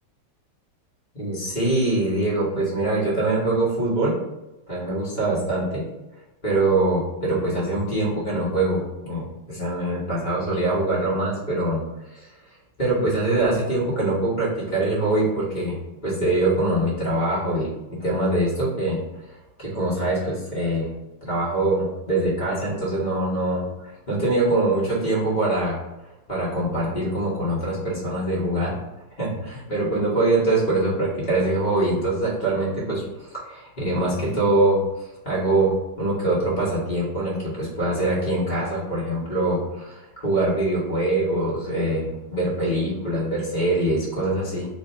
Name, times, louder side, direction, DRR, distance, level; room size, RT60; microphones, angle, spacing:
voice 1, 1.1-4.2 4.7-5.8 6.4-11.8 12.1-12.3 12.8-15.8 16.0-19.0 19.6-20.9 21.2-25.8 26.3-28.7 29.2-44.7, right 2 dB, 30° left, -6 dB, 0.9 m, -23 dB
3.2 x 2.6 x 4.3 m, 0.99 s
omnidirectional pair, 2.3 m